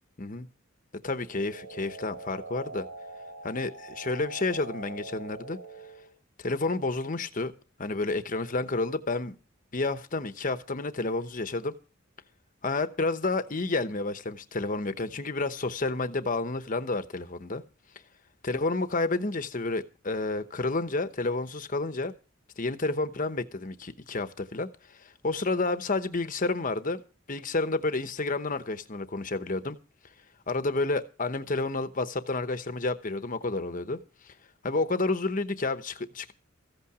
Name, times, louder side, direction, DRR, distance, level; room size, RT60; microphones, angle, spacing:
voice 1, 1.0-2.9 3.4-5.6 6.4-7.5 7.8-9.4 9.7-11.7 12.6-17.6 18.4-22.1 22.6-24.7 25.2-27.0 27.3-29.8 30.5-34.0 34.6-36.3, left 3 dB, 40° left, 1.0 m, -30 dB
sound 1, 1.2-6.1, right 2 dB, 80° right, 2.8 m, -43 dB
15.0 x 8.7 x 6.1 m
head